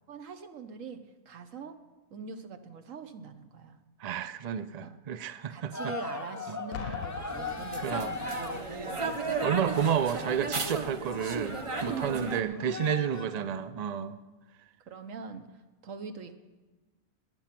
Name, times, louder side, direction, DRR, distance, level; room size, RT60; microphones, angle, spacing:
voice 1, 0.1-1.8 2.1-3.8 4.8-5.0 5.5-9.7 11.8-13.6 14.9-15.4 15.8-16.4, right 5 dB, 60° right, 9 dB, 1.3 m, -43 dB
voice 2, 4.0-5.7 6.5-6.6 7.8-8.1 9.4-14.2, right 8 dB, 90° right, 12 dB, 0.3 m, -31 dB
sound 1, 5.7-12.1 12.5-13.4, left 4 dB, 20° left, 0.4 m, -39 dB
Boom, 6.7-8.5 9.4-9.6, left 9 dB, 70° left, 1.0 m, -42 dB
sound 2, 7.3-12.4, right 3 dB, 30° right, 0.6 m, -35 dB
19.5 x 9.3 x 6.0 m, 1.2 s
omnidirectional pair, 1.6 m